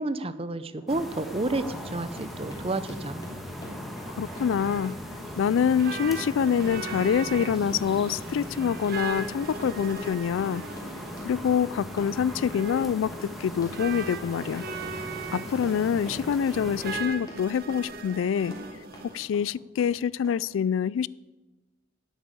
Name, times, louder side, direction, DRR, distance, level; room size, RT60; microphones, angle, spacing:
voice 1, 0.0-3.2, right 2 dB, 30° right, 13 dB, 0.6 m, -30 dB
Run, 0.7-0.9 1.3-19.1 19.3-19.9 20.2-20.3, left 1 dB, 20° left, 3.1 m, -45 dB
sound 1, 0.9-17.0, equal, ahead, 1.4 m, -39 dB
sound 2, 4.0-19.3, right 3 dB, 50° right, 1.1 m, -40 dB
voice 2, 4.2-5.0 5.4-10.6 11.3-14.6 15.3-18.5 19.0-21.1, left 7 dB, 80° left, 22 dB, 0.3 m, -26 dB
11.5 x 8.2 x 8.9 m, 1.1 s
head